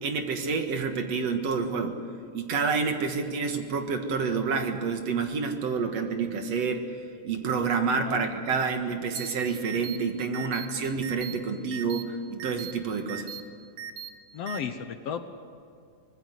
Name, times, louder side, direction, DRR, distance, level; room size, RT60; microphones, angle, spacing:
voice 1, 0.0-2.0 2.3-6.9 7.2-13.4, right 5 dB, 60° right, 5 dB, 2.7 m, -28 dB
sound 1, 9.2-9.3 9.7-10.0 10.3-10.7 11.0-11.3 11.7-12.0 12.4-12.7 13.1-13.4 13.8-14.1 14.5-14.6, right 9 dB, 75° right, 2.6 m, -38 dB
voice 2, 14.3-15.2, left 7 dB, 65° left, 8 dB, 1.8 m, -33 dB
25.0 x 20.0 x 8.1 m, 2.3 s
omnidirectional pair, 3.4 m